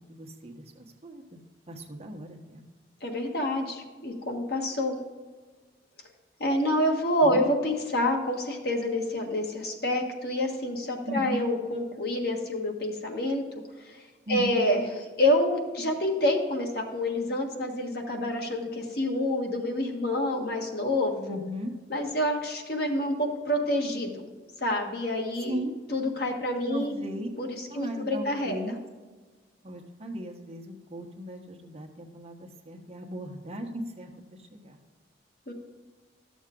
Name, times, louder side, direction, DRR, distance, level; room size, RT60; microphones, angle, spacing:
voice 1, 0.1-1.4 1.7-2.6 7.2-7.4 11.1-11.4 14.3-14.6 21.3-21.7 25.5-25.7 26.7-27.3 27.7-28.8 29.6-34.1 34.4-34.8, equal, 35° right, 2 dB, 1.2 m, -37 dB
voice 2, 3.0-5.0 6.4-13.4 13.8-14.0 14.3-14.9 15.2-21.4 21.9-24.2 24.6-25.6 25.9-26.9 27.4-28.6 35.5-35.6, left 1 dB, 60° left, 2 dB, 1.5 m, -27 dB
12.5 x 7.2 x 3.7 m, 1.4 s
head